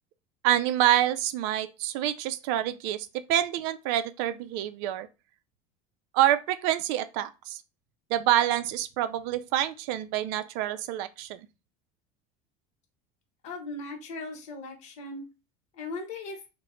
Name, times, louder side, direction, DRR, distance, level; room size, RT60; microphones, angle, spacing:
voice 1, 0.4-5.1 6.1-7.6 8.1-11.5, right 12 dB, 65° right, 0.4 m, -27 dB
voice 2, 13.4-15.2 15.7-16.4, left 2 dB, 40° left, 0.9 m, -38 dB
2.8 x 2.1 x 3.0 m
cardioid pair, 150°, 17 cm